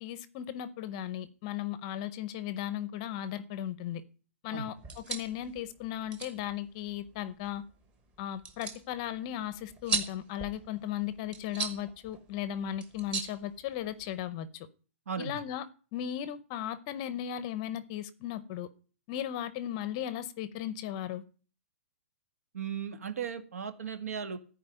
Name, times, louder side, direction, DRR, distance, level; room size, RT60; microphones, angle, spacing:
voice 1, 0.0-4.0 4.4-7.6 8.2-14.7 15.2-18.7 19.1-21.2, left 11 dB, 25° left, 15 dB, 0.6 m, -36 dB
sound 1, 4.8-14.2, right 4 dB, 15° right, 1.0 m, -40 dB
voice 2, 22.5-24.4, right 7 dB, 85° right, 8 dB, 1.8 m, -36 dB
14.0 x 4.8 x 9.1 m, 0.39 s
hypercardioid pair, 175°, 8 cm